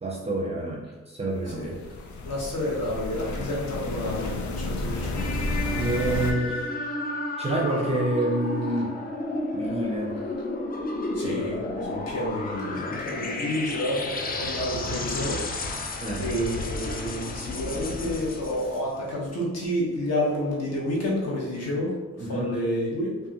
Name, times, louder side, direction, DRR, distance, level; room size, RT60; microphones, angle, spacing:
voice 1, 0.0-1.7 5.8-6.9 7.4-9.0 9.5-10.2 16.0-16.4 22.2-22.6, right 1 dB, 20° right, -1 dB, 0.5 m, -28 dB
sound 1, 1.4-6.3, left 2 dB, 80° left, 0.6 m, -31 dB
voice 2, 2.2-5.3 11.1-15.4 15.7-21.9 22.3-23.2, left 1 dB, 60° left, -4 dB, 1.2 m, -29 dB
sound 2, 5.2-18.9, left 2 dB, 30° left, 0.4 m, -32 dB
5.3 x 2.5 x 2.8 m, 1.2 s
wide cardioid pair, 175°, 29 cm